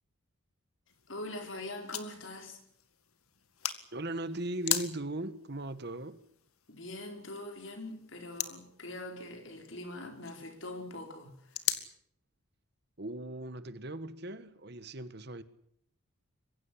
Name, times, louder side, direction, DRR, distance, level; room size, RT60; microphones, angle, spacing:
sound 1, 0.9-11.9, left 12 dB, 80° left, 2.0 m, -41 dB
voice 1, 1.1-2.6 6.7-11.5, left 1 dB, 60° left, 4.8 m, -43 dB
voice 2, 3.9-6.2 13.0-15.4, right 1 dB, 50° right, 1.4 m, -38 dB
23.5 x 16.0 x 9.9 m
head